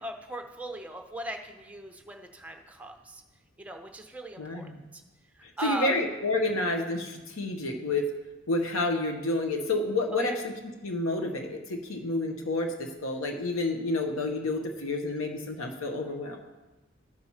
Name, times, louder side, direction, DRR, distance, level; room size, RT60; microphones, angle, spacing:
voice 1, 0.0-3.2 3.6-5.0 5.6-5.9 10.1-10.4, right 2 dB, 5° right, 4 dB, 0.6 m, -38 dB
voice 2, 4.4-4.8 5.4-8.1 8.5-10.5 10.8-16.4, left 2 dB, 80° left, 3 dB, 1.0 m, -29 dB
12.0 x 4.6 x 5.6 m, 1.1 s
head